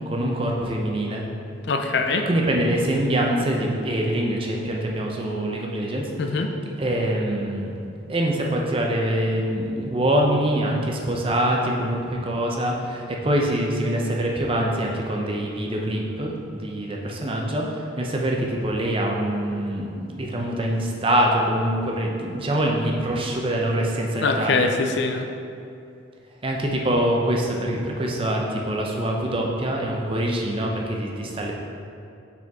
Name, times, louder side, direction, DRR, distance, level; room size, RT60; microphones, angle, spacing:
voice 1, 0.1-1.2 2.2-6.4 6.8-7.7 8.1-24.7 26.4-31.5, right 1 dB, 25° right, -1 dB, 0.6 m, -24 dB
voice 2, 1.6-2.3 6.2-6.5 24.2-25.3, left 3 dB, 60° left, 5 dB, 0.4 m, -23 dB
6.3 x 4.4 x 3.6 m, 2.7 s
head